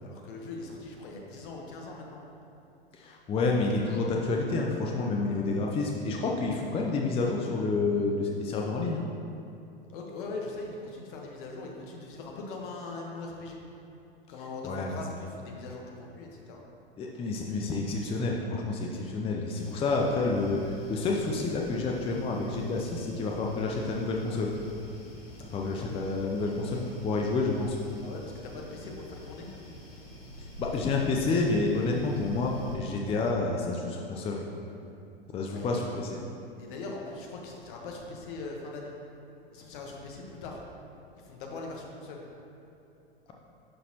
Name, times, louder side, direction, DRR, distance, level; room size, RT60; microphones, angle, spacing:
voice 1, 0.0-2.3 5.2-5.6 9.9-13.6 14.3-16.6 28.0-29.5 35.4-35.8 36.6-38.9 39.5-40.6 41.1-42.2, left 3 dB, 55° left, 0 dB, 1.2 m, -41 dB
voice 2, 2.9-9.1 14.6-15.0 17.0-24.5 25.5-27.8 30.6-34.4 35.3-36.2, left 3 dB, 20° left, 0 dB, 0.5 m, -29 dB
sound 1, 19.6-32.8, left 1 dB, 75° left, 1.4 m, -47 dB
11.0 x 4.1 x 2.9 m, 2.8 s
figure-of-eight pair, 90°, 30 cm